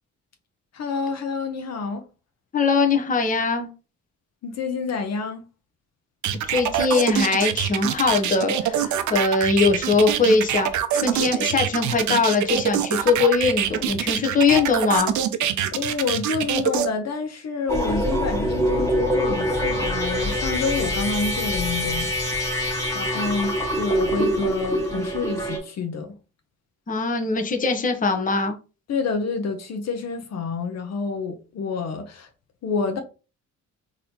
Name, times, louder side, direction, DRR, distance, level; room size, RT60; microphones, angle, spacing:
voice 1, 0.7-2.0 4.4-5.4 15.7-22.1 22.9-26.2 28.9-32.3 32.6-33.0, left 4 dB, 60° left, 0.7 m, -28 dB
voice 2, 2.5-3.7 6.5-15.1 26.9-28.6, left 4 dB, 25° left, 0.8 m, -21 dB
sound 1, 6.2-16.9, right 10 dB, 70° right, 0.6 m, -24 dB
sound 2, 17.7-25.6, equal, 10° left, 1.4 m, -25 dB
4.0 x 2.9 x 2.8 m
cardioid pair, 90°, 30 cm